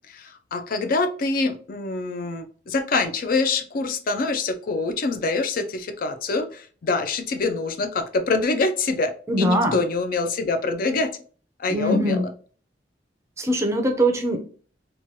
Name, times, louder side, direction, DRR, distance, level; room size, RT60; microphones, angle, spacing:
voice 1, 0.1-11.1 11.6-12.2, left 3 dB, 50° left, 7 dB, 0.4 m, -25 dB
voice 2, 9.3-9.8 11.7-12.3 13.4-14.4, right 1 dB, 15° right, 3 dB, 0.5 m, -22 dB
3.0 x 2.2 x 2.6 m, 0.41 s
head